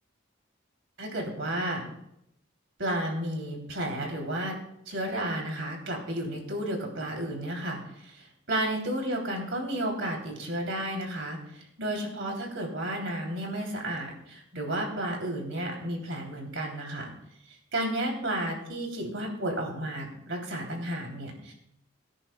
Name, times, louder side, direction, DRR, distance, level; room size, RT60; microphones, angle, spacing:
voice 1, 1.0-1.8 2.8-4.6 4.9-17.1 17.7-21.5, right 1 dB, 75° right, 1 dB, 2.9 m, -32 dB
23.0 x 10.0 x 2.2 m, 0.79 s
head